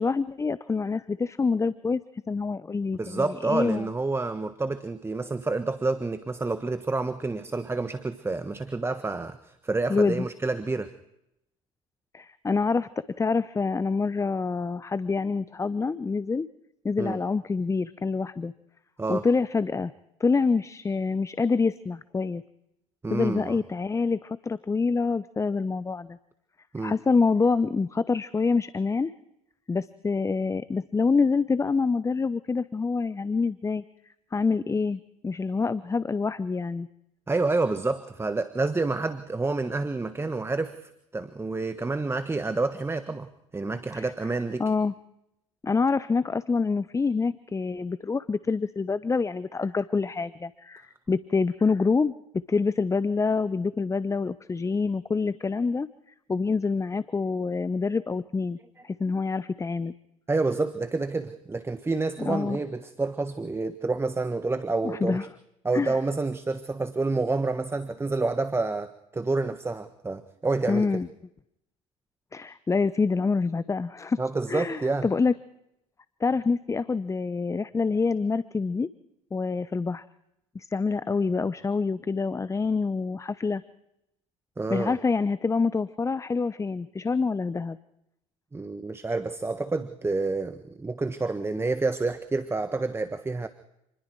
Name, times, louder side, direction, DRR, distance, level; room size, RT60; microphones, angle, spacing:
voice 1, 0.0-2.0 2.3-3.9 9.9-10.3 12.1-16.5 16.8-18.5 19.1-19.9 20.2-22.4 23.1-26.2 26.8-29.1 29.7-33.8 34.3-36.9 43.9-44.1 44.6-44.9 45.6-52.1 52.5-55.9 56.3-58.6 58.8-59.9 62.2-62.6 64.8-65.3 65.7-66.0 70.7-71.1 72.3-74.2 74.5-75.3 76.2-78.9 79.3-80.0 80.5-83.6 84.7-87.8, left 4 dB, 15° left, 16 dB, 0.8 m, -26 dB
voice 2, 2.9-10.9 17.0-17.2 19.0-19.3 23.0-23.6 26.7-26.9 37.3-43.3 43.5-44.6 60.3-65.2 65.6-70.9 74.2-75.1 84.6-85.0 88.5-93.5, right 3 dB, 15° right, 10 dB, 1.4 m, -28 dB
28.5 x 21.0 x 4.7 m, 0.83 s
figure-of-eight pair, 65°, 18 cm